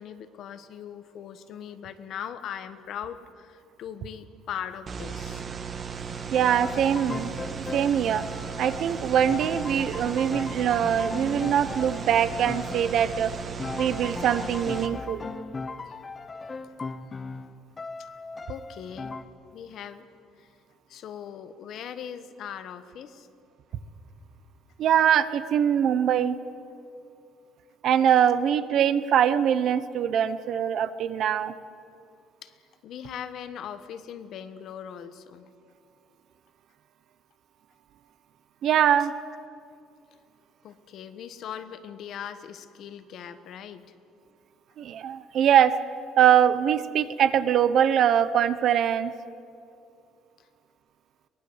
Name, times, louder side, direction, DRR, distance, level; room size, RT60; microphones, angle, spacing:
voice 1, 0.0-5.5 15.8-16.0 18.5-19.1 19.5-20.1 20.4-20.5 20.9-23.3 32.4-35.5 40.6-43.8 50.4-50.5, left 8 dB, 50° left, 11 dB, 1.3 m, -40 dB
sound 1, 4.9-14.9, right 6 dB, 30° right, 1.6 m, -36 dB
sound 2, 6.3-19.2, left 4 dB, 20° left, 0.8 m, -38 dB
voice 2, 6.3-7.3 7.7-8.2 8.6-13.3 13.8-15.3 24.8-26.4 27.8-31.5 38.6-39.1 44.8-45.8 46.2-49.1, right 9 dB, 50° right, 14 dB, 0.9 m, -22 dB
23.5 x 19.5 x 8.1 m, 2.4 s
cardioid pair, 160°, 0 cm